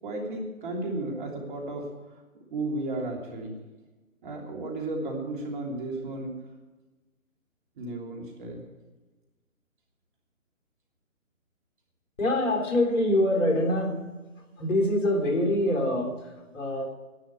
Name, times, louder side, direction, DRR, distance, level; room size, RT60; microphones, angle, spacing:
voice 1, 0.0-1.9 2.5-3.5 4.2-6.4 7.8-8.6, right 2 dB, 35° right, 0 dB, 3.2 m, -33 dB
voice 2, 12.2-14.1 14.6-16.9, left 1 dB, 60° left, 2 dB, 3.6 m, -25 dB
11.5 x 9.7 x 8.1 m, 1.2 s
figure-of-eight pair, 150°, 42 cm